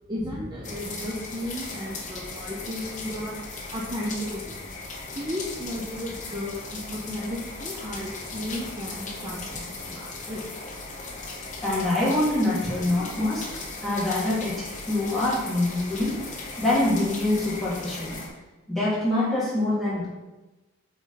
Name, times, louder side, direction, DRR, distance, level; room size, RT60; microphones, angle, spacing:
voice 1, 0.1-3.4 3.7-4.6 5.2-10.4 12.6-12.7, left 1 dB, 20° right, -4 dB, 0.7 m, -34 dB
sound 1, 0.6-18.3, left 3 dB, 35° left, 1.0 m, -37 dB
voice 2, 11.6-13.5 13.8-16.2 16.6-18.2 18.7-20.1, left 1 dB, ahead, -9 dB, 2.2 m, -25 dB
8.3 x 4.0 x 4.0 m, 1.1 s
head